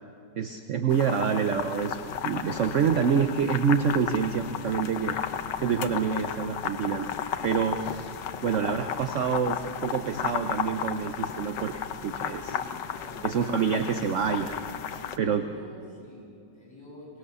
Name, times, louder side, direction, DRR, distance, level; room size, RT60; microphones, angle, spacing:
voice 1, 0.4-5.2 5.6-7.1 7.4-8.1 8.4-12.5 13.2-14.5 15.2-15.4, right 6 dB, 55° right, 8 dB, 0.9 m, -27 dB
sound 1, 0.9-15.2, left 8 dB, 80° left, 1.5 m, -34 dB
voice 2, 12.4-13.3 14.9-17.2, equal, 15° left, -6 dB, 7.8 m, -48 dB
23.5 x 18.5 x 6.9 m, 2.5 s
omnidirectional pair, 1.9 m